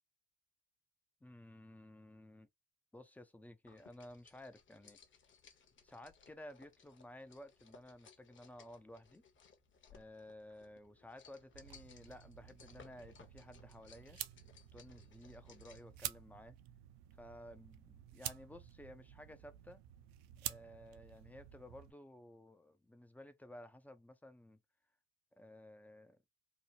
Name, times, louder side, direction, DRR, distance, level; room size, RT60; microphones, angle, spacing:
voice 1, 1.2-2.5 2.9-5.0 5.8-9.2 9.9-14.2 14.7-16.6 17.2-19.8 20.4-24.6 25.3-26.2, left 1 dB, 5° left, 0.4 m, -55 dB
sound 1, 3.7-16.0, left 6 dB, 30° left, 0.7 m, -63 dB
sound 2, 11.5-21.9, right 13 dB, 60° right, 0.5 m, -50 dB
2.9 x 2.0 x 2.7 m
hypercardioid pair, 75°, 40 cm